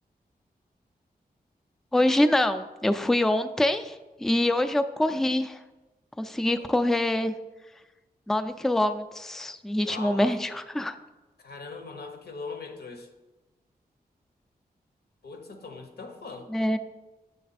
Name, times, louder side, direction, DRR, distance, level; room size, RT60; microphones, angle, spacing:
voice 1, 1.9-5.6 6.2-7.3 8.3-11.0 16.5-16.8, left 1 dB, ahead, 9 dB, 0.4 m, -25 dB
voice 2, 9.8-10.3 11.4-13.1 15.2-16.5, left 4 dB, 75° left, 5 dB, 0.8 m, -40 dB
7.7 x 3.3 x 4.1 m, 1.1 s
cardioid pair, 50°, 16 cm